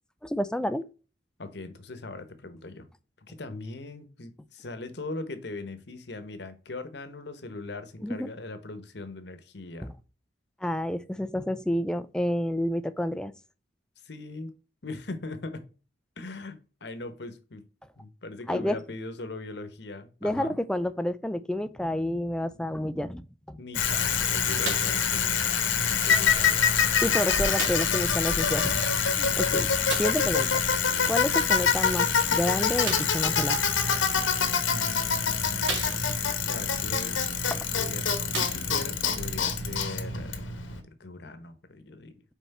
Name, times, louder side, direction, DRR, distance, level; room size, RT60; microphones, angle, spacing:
voice 1, 0.2-0.8 8.0-8.3 10.6-13.3 18.5-18.8 20.2-23.6 27.0-28.9 29.2-29.7 30.0-30.5 31.1-33.6 37.5-37.7, equal, 5° left, 0.3 m, -29 dB
voice 2, 1.4-2.9 3.2-9.9 14.0-14.5 14.8-15.6 16.2-17.6 18.0-20.6 23.6-25.6 25.9-26.6 30.2-30.6 34.4-35.7 36.5-37.2 37.7-40.4 41.0-42.2, left 2 dB, 60° left, 1.0 m, -40 dB
Bicycle, 23.7-40.8, left 6 dB, 85° left, 1.1 m, -25 dB
sound 1, 24.6-25.0 25.9-26.0 27.6-28.0 29.9-30.3 32.8-33.3 34.2-34.3 34.9-35.0 35.6-36.3 37.6-37.7 38.2-39.0 39.8-39.9, right 3 dB, 75° right, 2.2 m, -35 dB
5.7 x 4.3 x 4.2 m
head